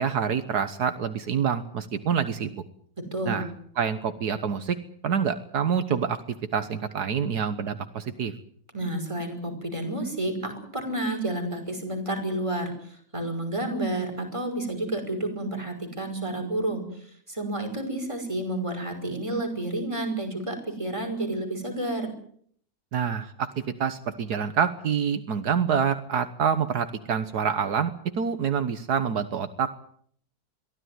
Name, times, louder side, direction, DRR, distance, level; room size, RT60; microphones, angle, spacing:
voice 1, 0.0-2.6 3.3-3.5 3.8-4.8 5.0-8.3 22.9-29.8, right 7 dB, 75° right, 10 dB, 1.8 m, -27 dB
voice 2, 3.0-3.5 8.7-22.1, right 1 dB, 20° right, 4 dB, 5.7 m, -30 dB
23.0 x 15.5 x 9.5 m, 0.62 s
omnidirectional pair, 1.7 m